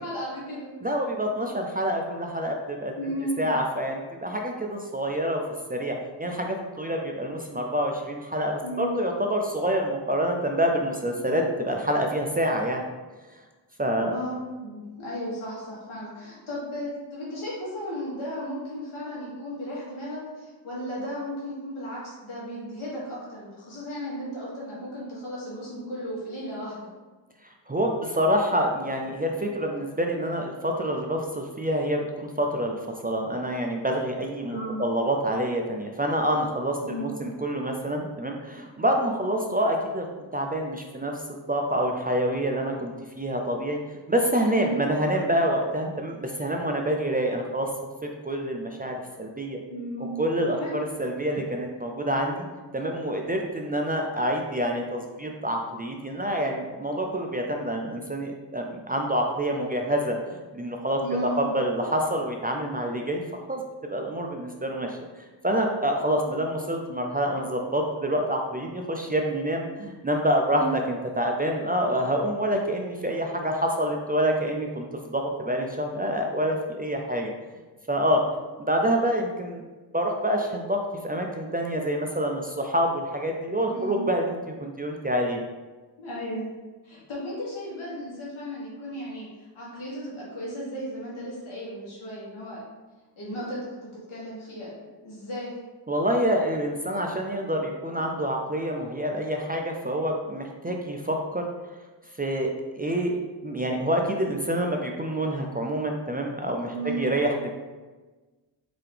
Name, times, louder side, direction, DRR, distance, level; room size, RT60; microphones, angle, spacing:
voice 1, 0.0-0.7 3.0-3.6 8.6-8.9 13.9-26.9 34.5-34.8 36.8-37.1 44.5-44.8 49.7-50.1 50.5-50.8 61.0-61.5 70.5-70.8 83.7-84.0 86.0-86.5 86.8-92.6 93.2-94.7 95.0-95.5 106.7-107.0, equal, 90° left, -6 dB, 1.5 m, -35 dB
voice 2, 0.8-2.9 3.4-5.4 5.7-12.8 13.8-14.1 27.7-40.1 40.3-41.2 41.5-43.8 44.1-47.7 48.0-49.6 50.2-52.5 52.7-61.0 61.4-63.2 63.5-63.6 63.9-65.0 65.4-77.3 77.9-78.2 78.6-79.6 79.9-80.8 81.0-85.4 95.9-101.5 102.2-102.5 102.8-103.2 103.4-107.5, equal, 20° right, 1 dB, 0.3 m, -27 dB
3.8 x 2.8 x 3.3 m, 1.3 s
cardioid pair, 70°, 47 cm